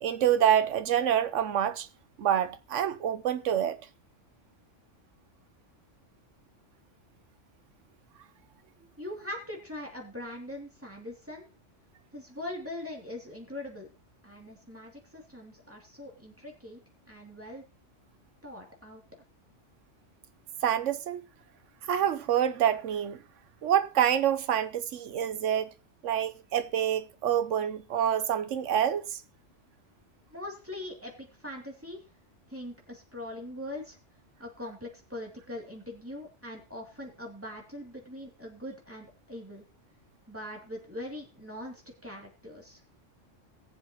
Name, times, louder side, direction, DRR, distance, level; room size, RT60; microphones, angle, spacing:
voice 1, 0.0-1.9 2.2-3.8 20.6-21.2 21.9-23.2 23.6-25.7 26.0-29.2, right 10 dB, 75° right, 1.1 m, -27 dB
voice 2, 9.0-11.5 12.1-13.9 14.2-16.8 17.1-17.6 18.4-19.0 30.3-32.0 32.5-34.0 34.4-39.6 40.3-42.8, left 1 dB, 10° right, 2.7 m, -42 dB
20.0 x 7.3 x 3.0 m
omnidirectional pair, 1.3 m